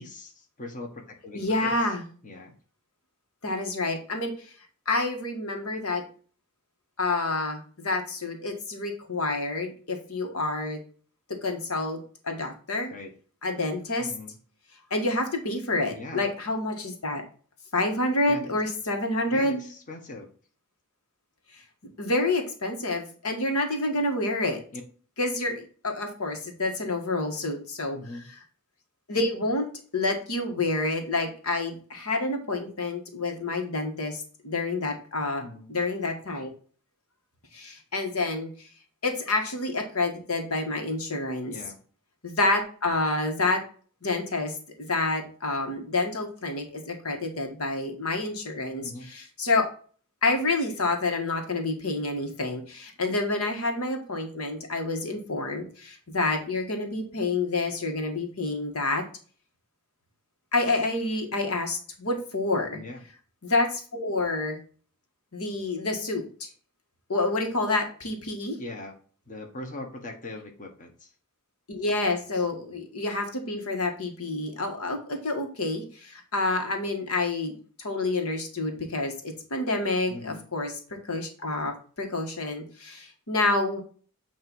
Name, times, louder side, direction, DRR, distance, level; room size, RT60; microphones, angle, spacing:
voice 1, 0.0-1.7 2.2-2.5 12.9-13.1 14.0-14.4 15.9-16.3 18.3-18.6 19.3-20.3 24.7-24.8 27.9-28.3 35.4-35.7 41.5-41.8 48.8-49.1 62.7-63.0 68.6-68.9 69.3-71.1 80.1-80.4, left 2 dB, 35° left, 2 dB, 1.3 m, -40 dB
voice 2, 1.4-2.1 3.4-4.3 4.9-6.0 7.0-10.8 11.3-12.9 13.4-14.1 14.9-17.2 17.7-19.6 22.0-24.6 25.2-28.0 29.1-29.7 29.9-35.4 35.7-36.5 37.5-38.5 39.0-41.5 42.2-43.6 44.0-49.7 50.2-59.0 60.5-62.8 63.4-64.6 65.3-66.5 67.1-68.6 71.7-80.7 81.1-83.8, left 2 dB, 80° left, 4 dB, 1.7 m, -28 dB
8.9 x 3.0 x 5.3 m, 0.41 s
head